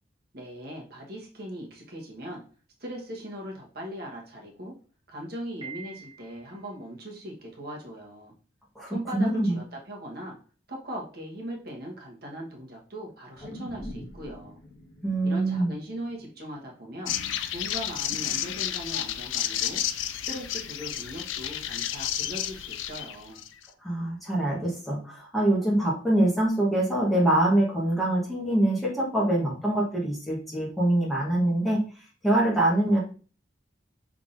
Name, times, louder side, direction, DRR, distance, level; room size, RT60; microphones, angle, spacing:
voice 1, 0.3-2.4 2.8-4.7 5.1-8.3 8.9-10.4 10.7-14.6 15.2-17.1 17.5-19.8 20.2-23.4, equal, 55° right, -1 dB, 1.3 m, -39 dB
Piano, 5.6-6.6, right 6 dB, 30° right, 1.0 m, -44 dB
voice 2, 8.7-9.6 15.0-15.7 23.8-31.8 32.2-33.0, right 1 dB, ahead, -5 dB, 1.2 m, -24 dB
sound 1, 13.3-17.8 18.3-18.4, equal, 15° left, 1.5 m, -45 dB
sound 2, 17.1-23.7, left 11 dB, 85° left, 0.4 m, -31 dB
5.5 x 3.6 x 2.6 m, 0.38 s
head